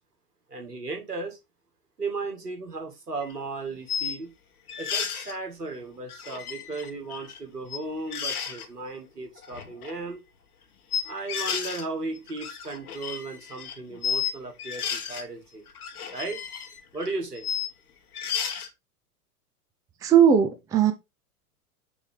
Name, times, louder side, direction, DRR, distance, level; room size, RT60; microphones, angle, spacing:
voice 1, 0.5-1.4 2.0-4.3 4.8-10.2 11.0-15.6 16.1-16.4 16.9-17.5, right 3 dB, 80° right, 2.0 m, -35 dB
sound 1, 3.2-3.3 3.9-4.2 4.7-5.4 6.1-7.4 7.6-7.8 8.1-8.7 9.4-9.9 10.9-11.8 12.2-14.3 14.6-15.2 15.7-17.7 18.1-18.7, left 7 dB, 70° left, 1.2 m, -32 dB
voice 2, 20.0-20.9, right 8 dB, 10° right, 0.4 m, -18 dB
6.1 x 3.3 x 5.0 m
figure-of-eight pair, 90°, 46 cm